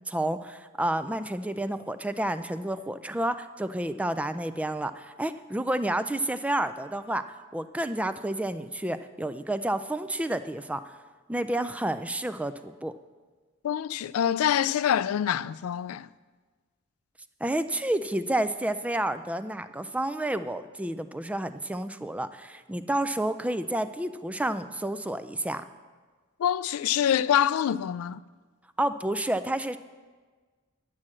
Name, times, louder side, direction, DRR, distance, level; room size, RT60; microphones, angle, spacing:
voice 1, 0.1-10.9 11.3-12.9 17.4-25.6 28.8-29.8, right 1 dB, 5° right, 0.3 m, -30 dB
voice 2, 13.6-16.1 26.4-28.2, left 9 dB, 90° left, 0.3 m, -25 dB
11.5 x 7.6 x 7.4 m
head